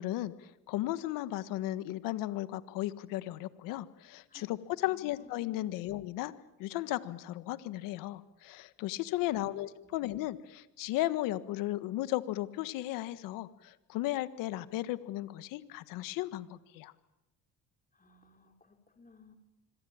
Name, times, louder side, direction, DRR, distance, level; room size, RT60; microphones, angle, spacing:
voice 1, 0.0-6.3 6.6-16.9, left 16 dB, 85° left, 14 dB, 1.6 m, -35 dB
voice 2, 4.8-5.9 9.2-10.1 17.9-19.4, left 3 dB, 25° left, 4 dB, 4.1 m, -60 dB
26.0 x 22.5 x 8.9 m, 0.94 s
supercardioid pair, 65°, 33 cm